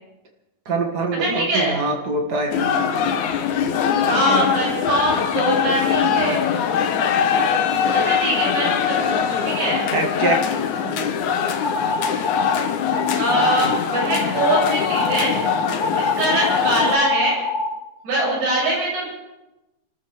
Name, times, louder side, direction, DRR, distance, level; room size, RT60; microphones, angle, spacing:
voice 1, 0.6-3.1 4.0-4.5 6.0-6.4 9.9-10.4 10.8-11.1 13.4-13.6, right 3 dB, 45° right, 2 dB, 1.4 m, -25 dB
voice 2, 1.2-1.8 4.1-6.4 7.9-9.9 13.2-15.4 15.9-17.4 18.0-19.0, right 1 dB, 75° right, -5 dB, 9.5 m, -23 dB
sound 1, 2.5-17.0, left 7 dB, 70° left, 2.0 m, -22 dB
sound 2, 11.6-12.6 12.9-13.6 13.9-14.6 14.9-17.7, left 3 dB, 30° left, 6.8 m, -25 dB
28.5 x 14.0 x 3.6 m, 0.99 s
omnidirectional pair, 4.5 m